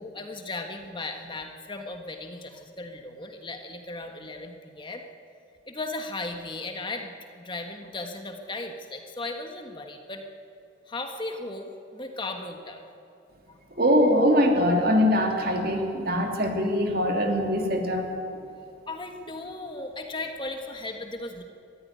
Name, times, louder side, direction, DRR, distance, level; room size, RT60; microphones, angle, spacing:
voice 1, 0.0-5.0 5.7-10.2 10.9-12.9 13.5-13.6 18.9-21.4, left 2 dB, 25° left, 4 dB, 1.4 m, -36 dB
voice 2, 13.8-18.1, equal, 50° right, 2 dB, 2.9 m, -22 dB
21.5 x 14.5 x 9.6 m, 2.6 s
head